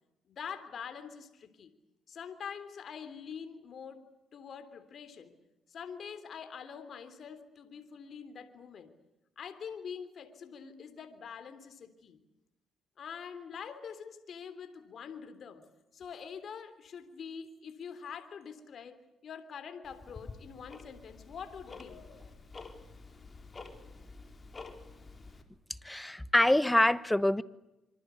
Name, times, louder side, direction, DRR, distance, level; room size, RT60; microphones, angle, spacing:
voice 1, 0.3-1.7 2.1-5.3 5.7-8.9 9.3-12.2 13.0-15.6 15.9-22.2, left 7 dB, 55° left, 10 dB, 3.4 m, -45 dB
Tick-tock, 19.8-25.4, left 3 dB, 30° left, 4.4 m, -49 dB
voice 2, 25.8-27.4, left 1 dB, 10° left, 15 dB, 1.3 m, -25 dB
26.5 x 25.5 x 8.4 m, 0.96 s
cardioid pair, 90°, 0 cm